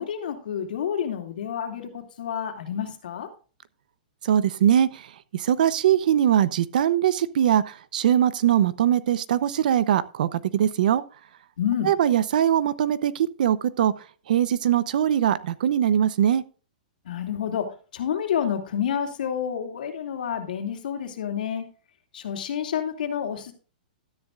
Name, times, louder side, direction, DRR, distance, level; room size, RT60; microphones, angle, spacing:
voice 1, 0.0-3.3 11.6-11.9 17.0-17.7 17.9-21.7 22.1-23.5, left 8 dB, 75° left, 2.6 m, -29 dB
voice 2, 4.2-5.0 5.3-11.0 11.8-13.9 14.3-16.4, right 10 dB, 70° right, 0.8 m, -21 dB
13.0 x 9.8 x 2.5 m
hypercardioid pair, 150°, 5 cm